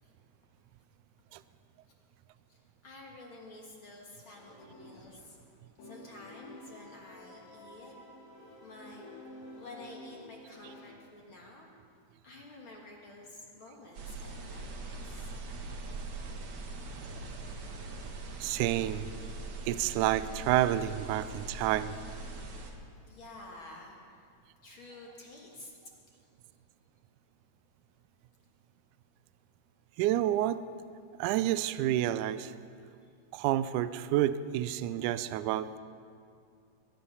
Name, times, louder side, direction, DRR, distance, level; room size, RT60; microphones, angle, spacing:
voice 1, 2.5-5.4 5.8-7.9 8.6-9.1 9.5-11.7 12.2-15.3 20.5-20.6 21.6-22.5 23.1-24.3 24.6-25.7 26.2-26.3 33.0-33.1, left 2 dB, 45° left, -1 dB, 2.0 m, -51 dB
sound 1, 4.2-5.5 5.8-10.9, left 1 dB, 80° left, 3.7 m, -51 dB
sound 2, 13.9-22.7, right 3 dB, 55° right, 1.5 m, -42 dB
voice 2, 18.4-19.1 19.7-22.0 30.0-30.6 31.2-32.5 33.3-35.8, right 13 dB, 80° right, 14 dB, 1.9 m, -29 dB
21.5 x 10.5 x 5.6 m, 2.3 s
omnidirectional pair, 3.9 m